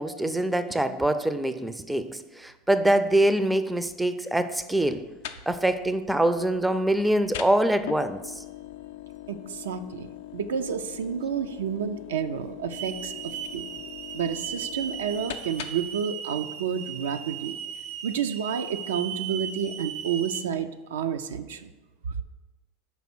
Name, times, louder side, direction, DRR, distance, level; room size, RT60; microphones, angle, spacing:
voice 1, 0.0-5.1 5.5-8.4, right 1 dB, 5° right, 11 dB, 0.4 m, -24 dB
sound 1, 4.8-16.0, left 12 dB, 70° left, 0.4 m, -42 dB
voice 2, 9.3-13.7 14.1-17.6 18.0-21.7 22.1-22.2, right 7 dB, 80° right, 8 dB, 0.4 m, -30 dB
Hiss / Alarm, 12.7-20.4, right 9 dB, 60° right, 0.8 m, -37 dB
5.4 x 4.2 x 5.9 m, 1.1 s
hypercardioid pair, 85°, 0 cm